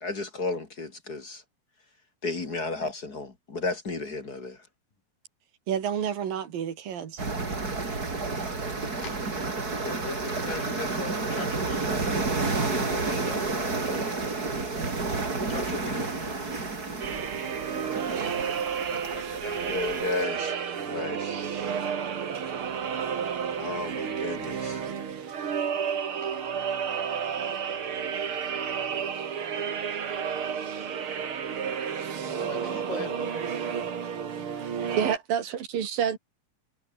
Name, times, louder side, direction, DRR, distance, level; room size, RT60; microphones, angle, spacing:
voice 1, 0.0-1.4 2.2-4.6 19.7-20.6 20.9-21.3 23.6-24.9 33.0-33.1, left 3 dB, 30° left, 2.8 m, -33 dB
voice 2, 5.7-7.3 35.0-36.2, right 8 dB, 85° right, 4.3 m, -29 dB
sound 1, 7.2-20.2, right 3 dB, 25° right, 4.0 m, -30 dB
voice 3, 9.8-11.9 12.7-14.4 15.4-16.7 18.9-19.9 26.2-26.4 32.2-33.5, left 4 dB, 75° left, 7.7 m, -40 dB
sound 2, 17.0-35.2, right 7 dB, 45° right, 2.5 m, -31 dB
omnidirectional pair, 3.9 m